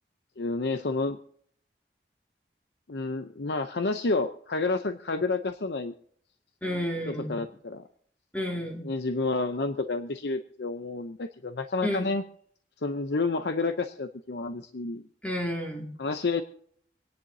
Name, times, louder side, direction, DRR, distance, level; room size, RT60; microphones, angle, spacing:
voice 1, 0.4-1.2 2.9-5.9 7.1-7.9 8.8-12.2 12.8-15.1 16.0-16.4, left 3 dB, 75° left, 8 dB, 0.7 m, -30 dB
voice 2, 6.6-7.4 8.3-8.9 11.8-12.1 15.2-15.9, equal, 10° left, 1 dB, 2.3 m, -31 dB
26.5 x 10.5 x 2.8 m, 0.63 s
head